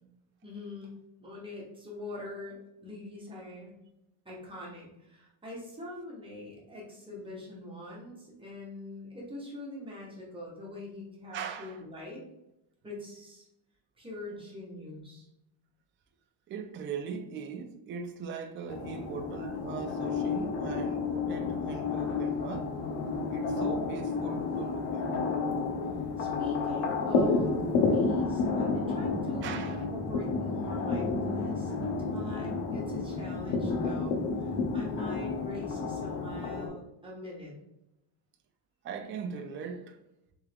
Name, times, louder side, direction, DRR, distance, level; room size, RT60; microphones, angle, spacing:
voice 1, 0.4-0.9 1.2-3.7 4.2-12.2 12.8-13.5 14.0-15.3 26.2-37.6, left 1 dB, 10° right, 1.4 m, -43 dB
voice 2, 11.3-11.8 16.5-22.7 23.3-25.1 29.4-29.9 38.8-40.0, right 6 dB, 30° right, 0.4 m, -40 dB
sound 1, 18.7-36.7, left 4 dB, 80° left, 1.0 m, -31 dB
3.7 x 3.6 x 3.4 m
cardioid pair, 145°, 46 cm